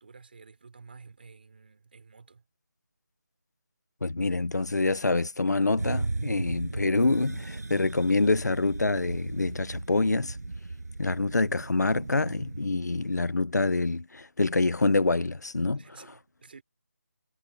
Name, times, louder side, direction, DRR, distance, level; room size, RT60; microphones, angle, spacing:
voice 1, 0.0-2.4 15.7-16.6, right 4 dB, 35° right, 4.3 m, -51 dB
voice 2, 4.0-10.4 11.0-15.8, left 3 dB, 80° left, 1.3 m, -26 dB
sound 1, 5.8-12.7, right 2 dB, 70° right, 7.7 m, -36 dB
figure-of-eight pair, 175°, 9 cm